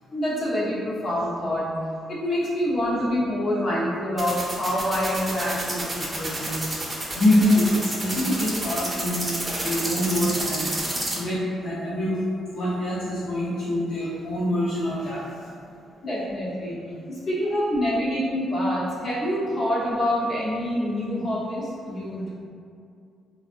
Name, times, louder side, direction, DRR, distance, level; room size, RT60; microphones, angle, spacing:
voice 1, 0.1-1.7 2.1-6.5 16.0-16.8 17.1-22.3, equal, 50° left, -7 dB, 0.9 m, -26 dB
sound 1, 4.2-11.2, right 1 dB, 20° right, 0.7 m, -29 dB
voice 2, 7.1-10.7 11.1-12.2 12.5-15.2, left 1 dB, 75° left, -13 dB, 0.9 m, -24 dB
3.3 x 2.4 x 2.5 m, 2.4 s
cardioid pair, 90°, 0 cm